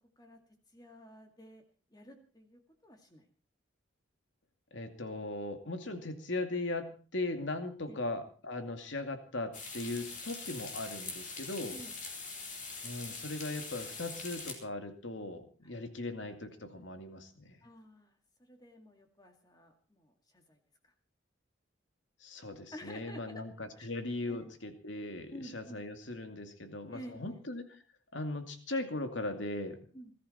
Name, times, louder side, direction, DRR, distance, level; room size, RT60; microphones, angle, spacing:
voice 1, 0.7-1.6 1.9-3.3 7.8-8.0 11.7-12.0 15.6-15.7 17.6-20.9 22.7-23.4 23.8-23.9 24.3-24.5 25.3-25.8 26.9-27.4 29.9-30.1, equal, 20° left, 4 dB, 2.1 m, -51 dB
voice 2, 4.7-11.8 12.8-17.6 22.2-27.6 28.1-29.8, left 2 dB, 70° left, 6 dB, 2.4 m, -39 dB
sound 1, 9.5-14.5, left 4 dB, 40° left, 4.2 m, -43 dB
21.0 x 13.5 x 4.3 m, 0.39 s
head